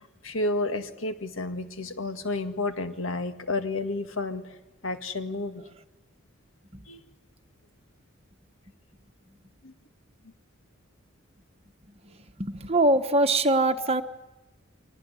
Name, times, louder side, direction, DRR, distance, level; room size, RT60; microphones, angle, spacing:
voice 1, 0.0-4.6 4.8-5.6 6.9-7.0 9.6-9.7, left 2 dB, 80° left, 8 dB, 1.9 m, -31 dB
voice 2, 12.4-14.0, right 2 dB, 30° right, 6 dB, 1.2 m, -22 dB
24.0 x 19.0 x 9.8 m, 0.97 s
head